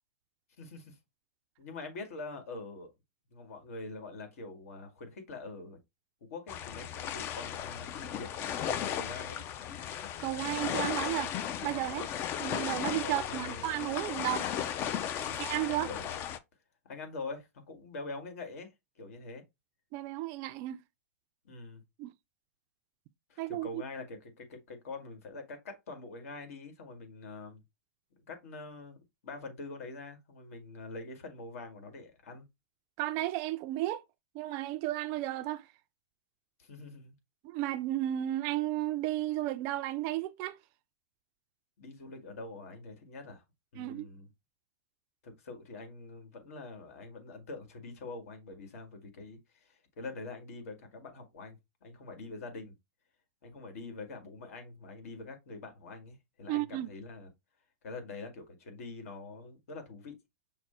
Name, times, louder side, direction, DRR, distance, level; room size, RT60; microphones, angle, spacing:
voice 1, 0.6-1.0 1.6-2.9 3.3-5.8 6.3-8.3 8.8-9.4 13.0-13.7 15.2-15.4 15.9-16.2 16.8-19.4 21.4-21.8 23.3-27.6 28.1-29.0 29.2-32.5 36.6-37.2 41.8-43.4 43.7-44.3 45.2-52.7 53.4-57.3 57.8-60.2, left 3 dB, 70° left, 1.8 m, -45 dB
sound 1, 6.5-16.4, left 9 dB, 30° left, 0.4 m, -36 dB
voice 2, 10.2-11.3 11.6-12.1 12.4-14.5 15.4-15.9 19.9-20.8 22.0-22.1 23.4-23.7 33.0-34.0 34.3-35.7 37.4-40.6 43.8-44.1 56.5-56.9, right 15 dB, 35° right, 0.4 m, -33 dB
5.9 x 2.1 x 4.3 m
hypercardioid pair, 145°, 8 cm